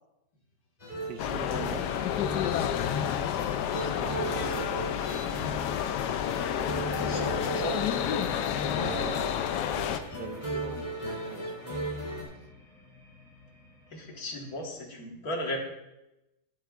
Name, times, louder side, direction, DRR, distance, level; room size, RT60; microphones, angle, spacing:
sound 1, 0.8-12.2, right 1 dB, 25° left, 2.4 m, -37 dB
voice 1, 1.0-1.9 3.8-4.7 8.7-11.6, right 9 dB, 80° right, 9 dB, 1.2 m, -42 dB
sound 2, 1.2-10.0, left 10 dB, 80° left, 1.2 m, -30 dB
sound 3, 1.8-14.7, left 1 dB, ahead, 2.4 m, -49 dB
voice 2, 4.9-5.2 7.0-7.8 13.9-15.6, left 1 dB, 65° left, 0 dB, 2.0 m, -36 dB
12.0 x 9.2 x 2.4 m, 0.92 s
omnidirectional pair, 1.7 m